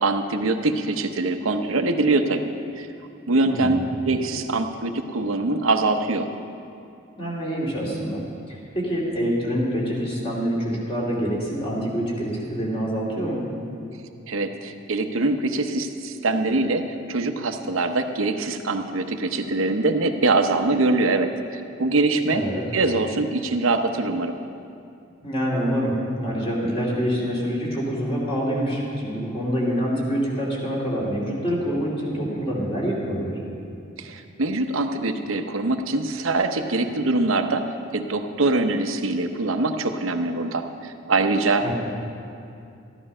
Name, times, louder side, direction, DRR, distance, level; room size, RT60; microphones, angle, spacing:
voice 1, 0.0-2.9 3.3-3.8 4.0-6.3 14.3-22.4 22.7-24.3 34.0-37.6 37.9-41.6, right 2 dB, 85° right, 6 dB, 0.8 m, -23 dB
voice 2, 3.4-3.9 7.2-8.2 8.5-13.4 22.3-22.6 25.2-25.9 26.2-33.4 41.6-41.7, equal, 30° left, -4 dB, 2.8 m, -26 dB
13.5 x 11.0 x 5.5 m, 2.5 s
head